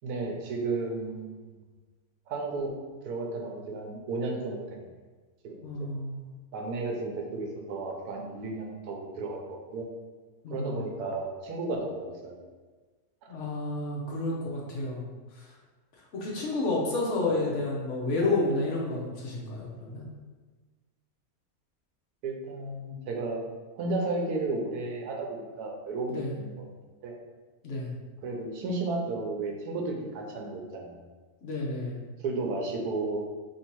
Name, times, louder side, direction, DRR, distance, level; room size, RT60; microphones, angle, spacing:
voice 1, 0.0-1.5 2.3-2.8 3.0-4.8 5.4-5.7 6.5-9.9 10.5-12.4 17.3-17.4 22.2-23.4 23.7-26.5 27.0-27.2 28.2-31.0 32.2-33.2, right 3 dB, 90° right, 1 dB, 1.2 m, -33 dB
voice 2, 5.6-6.3 10.4-10.8 13.3-15.1 15.3-15.6 16.1-20.1 26.0-26.4 27.6-28.0 31.4-32.0, left 2 dB, 60° left, -3 dB, 1.0 m, -30 dB
3.0 x 2.7 x 4.4 m, 1.3 s
omnidirectional pair, 1.6 m